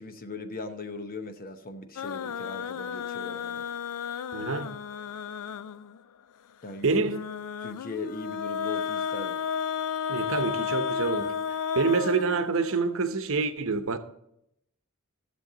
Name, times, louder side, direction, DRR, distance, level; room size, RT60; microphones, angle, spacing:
voice 1, 0.0-3.7 6.6-7.0 7.6-9.4, left 3 dB, 40° left, 0.9 m, -39 dB
sound 1, 2.0-6.0 7.1-12.9, left 7 dB, 90° left, 0.4 m, -33 dB
voice 2, 4.3-4.8 6.8-7.2 10.1-11.4 11.7-14.0, right 4 dB, 65° right, 0.9 m, -27 dB
13.5 x 7.1 x 3.9 m
head